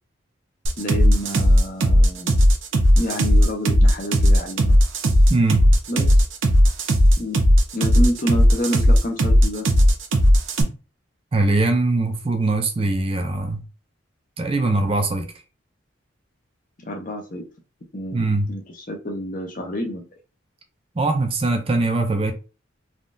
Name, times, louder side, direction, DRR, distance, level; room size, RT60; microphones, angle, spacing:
sound 1, 0.6-10.6, equal, 80° right, 0.6 m, -15 dB
voice 1, 0.8-2.3 2.9-4.8 5.9-6.1 7.2-7.4 7.7-9.7 16.8-17.4 17.9-18.2 18.5-20.0, equal, 40° left, 0.6 m, -28 dB
voice 2, 5.3-5.7 11.3-13.6 14.4-15.3 18.1-18.5 21.0-22.3, right 2 dB, 30° right, 0.3 m, -21 dB
3.5 x 2.3 x 2.5 m
head